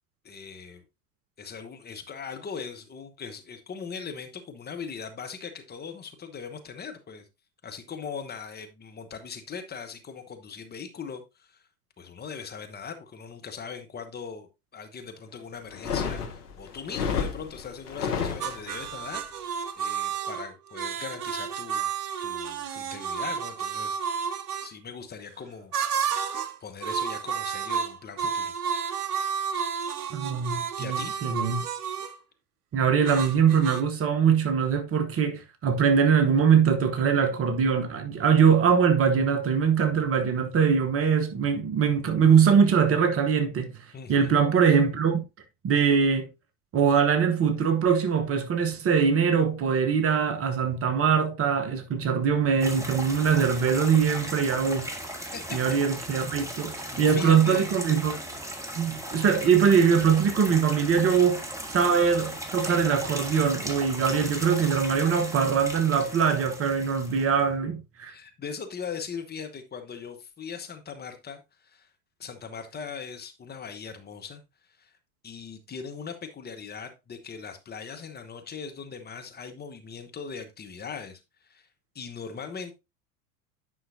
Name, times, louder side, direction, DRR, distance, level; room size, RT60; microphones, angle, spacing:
voice 1, 0.2-0.8 1.4-7.3 7.6-11.7 12.0-21.9 22.2-24.2 24.6-25.7 26.6-28.5 30.8-31.2 43.9-44.3 55.2-55.7 56.9-57.7 68.1-71.9 72.2-74.4 74.8-75.0 75.2-81.7 81.9-82.7, left 6 dB, 20° left, 1.1 m, -40 dB
sound 1, 15.7-18.9, left 6 dB, 75° left, 1.2 m, -31 dB
sound 2, 18.4-24.7 25.7-26.6 26.8-32.2 33.1-33.8, right 7 dB, 75° right, 0.8 m, -31 dB
voice 2, 30.1-31.6 32.7-43.7 44.1-45.2 45.6-46.3 46.7-54.9 55.5-58.2 58.8-61.4 61.7-68.1, right 6 dB, 30° right, 1.1 m, -22 dB
sound 3, 52.6-67.4, equal, 5° right, 1.5 m, -37 dB
9.7 x 5.6 x 2.7 m
figure-of-eight pair, 85°, 46 cm